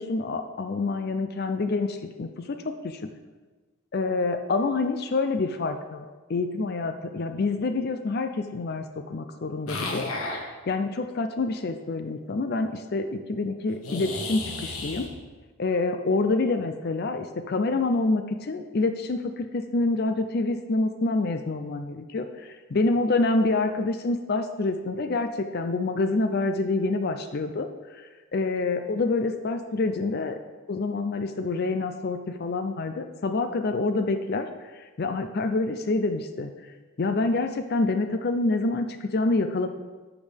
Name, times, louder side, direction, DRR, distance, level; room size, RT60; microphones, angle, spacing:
voice 1, 0.0-3.0 3.9-10.1 10.7-15.1 15.6-27.7 28.0-30.4 30.7-34.7 35.0-36.5 37.0-39.7, left 3 dB, 45° left, 8 dB, 0.4 m, -27 dB
sound 1, 9.7-10.4 13.8-15.1, left 2 dB, 80° left, 1.5 m, -32 dB
12.0 x 7.1 x 3.4 m, 1.3 s
head